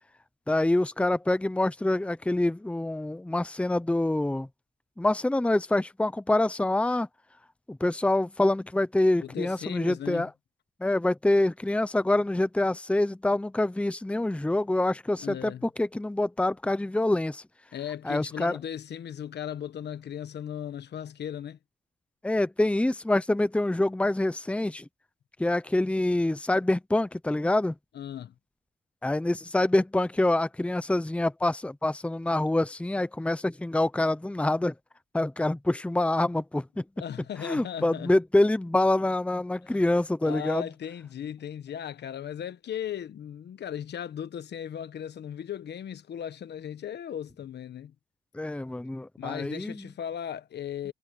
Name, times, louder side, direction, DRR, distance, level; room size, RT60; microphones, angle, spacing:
voice 1, 0.5-4.5 5.0-7.1 7.7-10.3 10.8-17.4 18.0-18.6 22.2-24.9 25.4-27.7 29.0-34.7 35.1-36.8 37.4-40.7 48.3-49.9, left 1 dB, 5° left, 0.9 m, -26 dB
voice 2, 9.2-10.3 15.2-15.7 17.7-21.6 27.9-28.3 37.0-38.1 39.7-39.8 40.2-47.9 49.2-50.9, left 9 dB, 60° left, 1.2 m, -37 dB
cardioid pair, 90°, 20 cm